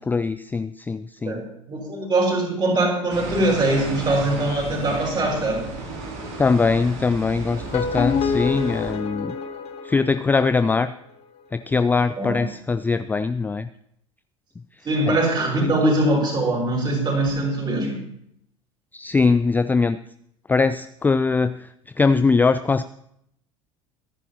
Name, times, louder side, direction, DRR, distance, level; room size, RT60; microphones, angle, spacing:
voice 1, 0.0-1.4 6.4-9.4 9.9-10.9 11.5-13.7 15.1-15.2 15.6-15.9 18.9-20.0 20.5-21.6 22.0-22.8, left 4 dB, 10° left, 13 dB, 0.4 m, -21 dB
voice 2, 1.3-5.7 12.2-12.4 14.8-18.0, right 2 dB, 25° right, 0 dB, 5.7 m, -22 dB
sound 1, 3.1-8.9, right 2 dB, 60° right, 3.3 m, -34 dB
sound 2, 7.5-10.7, left 6 dB, 35° left, 1.5 m, -27 dB
24.5 x 11.0 x 2.9 m, 0.73 s
figure-of-eight pair, 70°, 17 cm